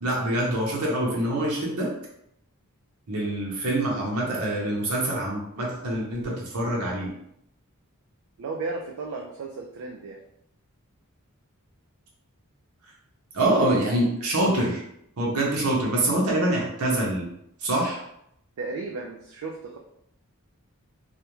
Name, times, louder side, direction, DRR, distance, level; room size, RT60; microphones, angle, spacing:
voice 1, 0.0-1.9 3.1-7.1 13.3-14.8 15.2-17.3 17.6-18.0, right 1 dB, 85° right, -3 dB, 0.7 m, -25 dB
voice 2, 8.4-10.2 18.6-19.8, right 3 dB, 70° right, 1 dB, 0.3 m, -34 dB
2.3 x 2.1 x 2.9 m, 0.75 s
head